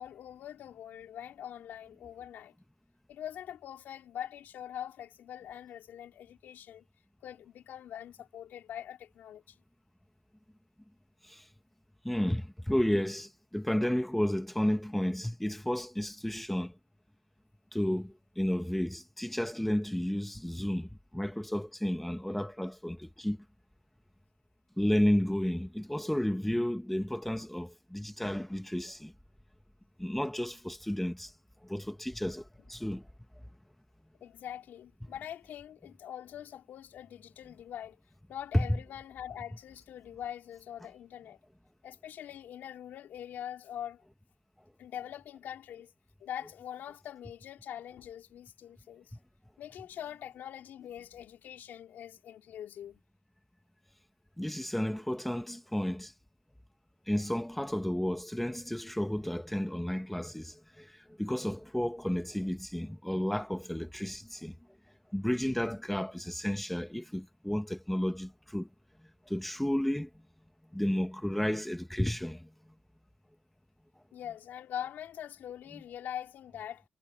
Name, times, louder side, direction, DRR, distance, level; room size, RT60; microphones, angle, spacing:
voice 1, 0.0-2.5 3.1-6.8 7.2-9.6 34.2-38.0 38.3-41.4 41.8-44.0 44.8-45.9 46.2-49.2 49.6-53.0 74.1-76.8, left 10 dB, 85° left, 4.5 m, -43 dB
voice 2, 12.0-16.7 17.7-23.4 24.8-29.1 30.0-31.3 31.6-33.0 35.0-35.1 38.5-38.8 54.4-56.1 57.1-64.5 65.1-68.7 69.3-70.1 70.7-72.5, left 1 dB, 5° left, 1.5 m, -32 dB
cardioid pair, 95°, 3 cm